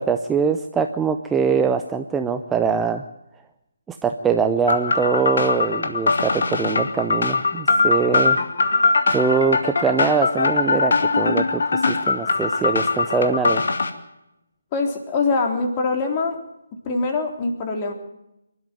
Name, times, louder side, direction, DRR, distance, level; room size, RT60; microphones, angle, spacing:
voice 1, 0.0-3.0 3.9-8.4 9.1-13.6, right 5 dB, 10° right, 6 dB, 0.7 m, -23 dB
sound 1, 4.7-13.9, left 3 dB, 55° left, 2.4 m, -21 dB
voice 2, 14.7-16.4 16.8-17.9, left 3 dB, 25° left, 3 dB, 3.6 m, -23 dB
24.5 x 12.5 x 9.0 m, 0.91 s
figure-of-eight pair, 145°, 0 cm